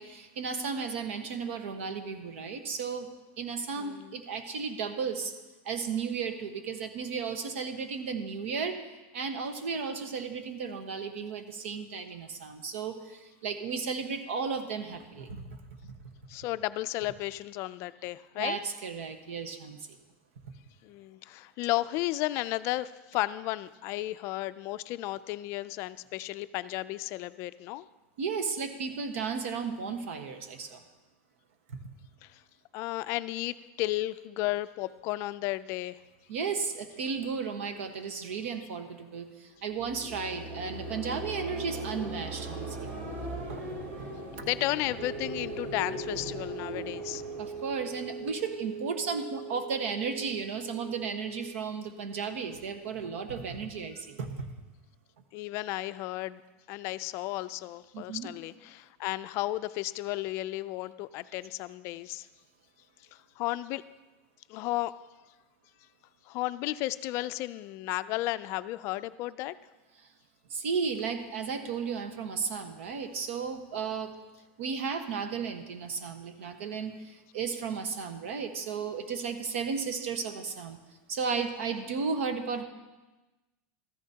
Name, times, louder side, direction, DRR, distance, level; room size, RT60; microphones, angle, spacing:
voice 1, 0.0-3.1 3.4-5.3 5.6-8.8 9.1-15.9 18.4-20.0 28.2-30.8 31.7-31.8 36.3-42.9 43.5-43.6 43.9-44.0 47.4-54.5 57.9-58.3 70.0-70.1 70.5-74.1 74.6-80.8 81.1-82.6, right 5 dB, 85° right, 7 dB, 1.2 m, -34 dB
voice 2, 3.8-4.1 16.3-18.6 20.8-27.9 32.2-32.4 32.7-36.0 43.9-47.2 55.3-56.4 56.7-62.3 63.1-63.8 64.5-64.9 66.3-69.6, left 17 dB, 45° left, 14 dB, 0.3 m, -33 dB
sound 1, 39.6-48.7, right 1 dB, 60° right, 3.0 m, -40 dB
sound 2, 45.0-51.5, right 5 dB, 40° right, 0.9 m, -41 dB
14.5 x 14.0 x 2.8 m, 1.1 s
supercardioid pair, 155°, 7 cm